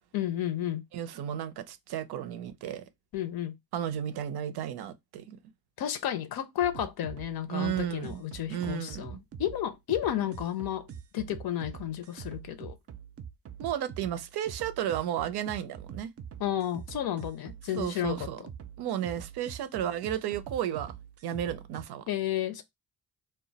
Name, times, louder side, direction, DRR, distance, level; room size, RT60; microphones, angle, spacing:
voice 1, 0.1-0.8 3.1-3.5 5.8-10.9 11.1-12.8 16.4-18.2 22.1-22.6, left 11 dB, 75° left, 0.6 m, -32 dB
voice 2, 0.9-2.8 3.7-5.4 7.5-8.2 8.5-9.2 13.6-16.1 17.8-18.4 18.8-20.9 21.2-22.0, right 10 dB, 85° right, 0.5 m, -33 dB
sound 1, 6.6-21.8, right 8 dB, 40° right, 0.4 m, -44 dB
2.2 x 2.0 x 3.8 m
cardioid pair, 85°, 38 cm